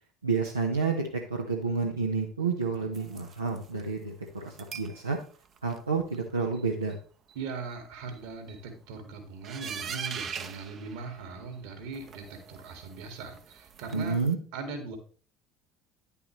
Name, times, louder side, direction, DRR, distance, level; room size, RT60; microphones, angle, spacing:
voice 1, 0.2-5.2 5.6-7.0 13.9-14.4, right 4 dB, 85° right, -1 dB, 1.0 m, -30 dB
sound 1, 2.9-3.8 4.5-5.0 5.3-5.8 6.1-6.2 6.5-6.6 6.9-7.0 7.3-7.4 7.7-7.8 8.1-8.6 9.4-11.6 11.9-14.3, right 7 dB, 40° right, 0.9 m, -42 dB
voice 2, 7.3-14.2 14.5-15.0, right 4 dB, 60° right, 5 dB, 2.2 m, -40 dB
10.5 x 6.9 x 3.2 m, 0.40 s
figure-of-eight pair, 65°, 0 cm